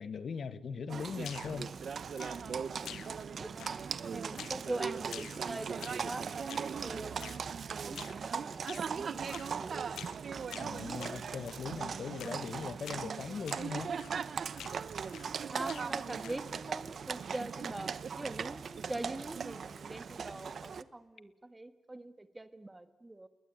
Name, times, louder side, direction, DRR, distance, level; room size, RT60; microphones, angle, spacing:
voice 1, 0.0-1.8 10.6-13.9, left 6 dB, 55° left, 1.4 m, -40 dB
Livestock farm animals working animals, 0.9-20.8, right 6 dB, 50° right, 1.0 m, -39 dB
sound 1, 1.2-1.7 2.2-2.6 2.8-3.3 3.6-4.0 4.4-4.7 5.0-6.1 6.5-6.8 7.2-7.4 7.9-8.2 8.7-8.9 9.3-9.6 9.9-10.2 10.5-11.7 12.2-12.5 12.8-13.1 13.5-13.7 14.0-14.3 14.6-15.4 15.6-16.5, left 9 dB, 85° left, 1.3 m, -48 dB
voice 2, 3.4-7.3 7.8-9.8 15.5-23.3, right 2 dB, 15° right, 1.6 m, -43 dB
30.0 x 21.0 x 9.1 m
cardioid pair, 110°, 0 cm